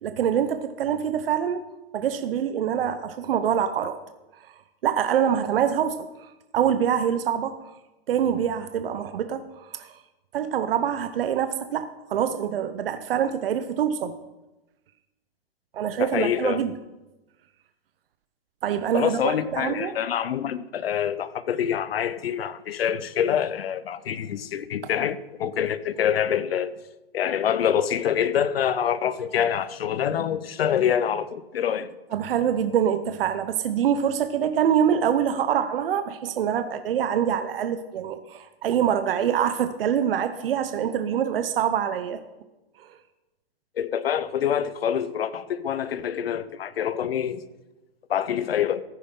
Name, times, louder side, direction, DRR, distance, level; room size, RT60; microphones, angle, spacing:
voice 1, 0.0-1.6 1.9-4.0 4.4-4.5 4.8-6.1 6.5-7.6 8.1-10.0 10.3-14.2 15.7-16.7 18.6-20.0 32.1-42.2 42.8-43.0, right 9 dB, 65° right, 0.9 m, -25 dB
voice 2, 16.0-16.6 18.9-26.7 27.1-31.9 43.8-47.4 48.1-48.8, left 9 dB, 75° left, 0.9 m, -26 dB
14.5 x 10.0 x 3.8 m
hypercardioid pair, 130°, 31 cm